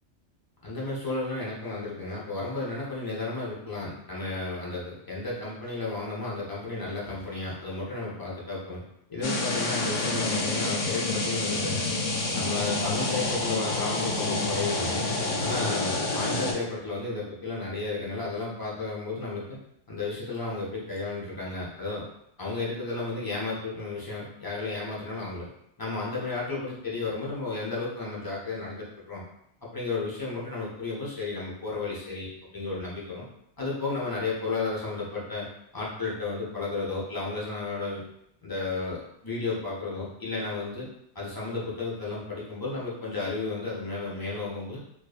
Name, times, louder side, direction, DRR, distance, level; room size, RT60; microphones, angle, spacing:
voice 1, 0.6-8.8 9.1-11.9 12.3-15.0 15.4-19.4 19.9-22.0 22.4-25.5 25.8-29.2 29.7-33.2 33.6-35.5 35.7-38.0 38.4-40.9 41.1-44.8, left 3 dB, 35° left, -6 dB, 0.4 m, -33 dB
sound 1, 9.2-16.5, left 2 dB, 80° left, 0.9 m, -28 dB
2.5 x 2.3 x 2.3 m, 0.78 s
omnidirectional pair, 1.2 m